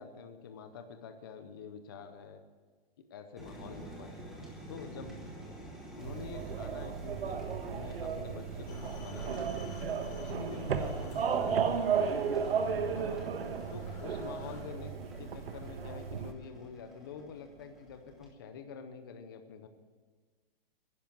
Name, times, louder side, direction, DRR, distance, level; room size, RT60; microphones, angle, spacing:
voice 1, 0.0-2.4 3.1-4.2 4.7-5.2 6.0-9.5 10.1-12.1 13.1-13.2 13.7-19.7, left 6 dB, 25° left, 7 dB, 0.6 m, -47 dB
sound 1, 3.4-18.3, right 1 dB, ahead, 1.0 m, -50 dB
sound 2, 6.0-16.3, right 6 dB, 80° right, 1.3 m, -34 dB
sound 3, 8.7-14.6, left 1 dB, 40° left, 3.6 m, -46 dB
11.0 x 10.5 x 8.7 m, 1.4 s
hypercardioid pair, 180°, 29 cm